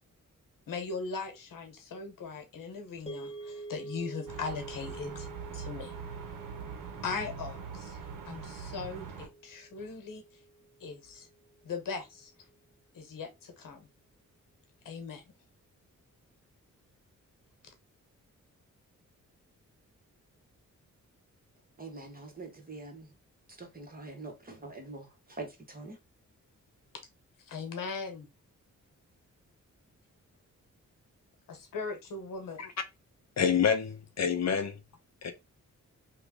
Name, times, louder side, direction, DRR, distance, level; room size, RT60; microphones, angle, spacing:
voice 1, 0.7-5.9 7.0-10.2 10.8-11.3 11.6-12.3 12.9-13.9 14.8-15.2 17.6-17.7 27.5-28.3 31.5-32.6, left 4 dB, 90° left, 0.9 m, -39 dB
sound 1, 3.1-11.3, right 3 dB, 20° left, 1.4 m, -47 dB
sound 2, 4.3-9.3, right 6 dB, 85° right, 0.7 m, -42 dB
voice 2, 21.8-23.1 23.6-26.0, right 3 dB, 30° right, 1.2 m, -44 dB
voice 3, 33.4-34.8 35.2-35.3, left 7 dB, 55° left, 0.6 m, -27 dB
3.0 x 2.3 x 3.5 m
cardioid pair, 65°, 32 cm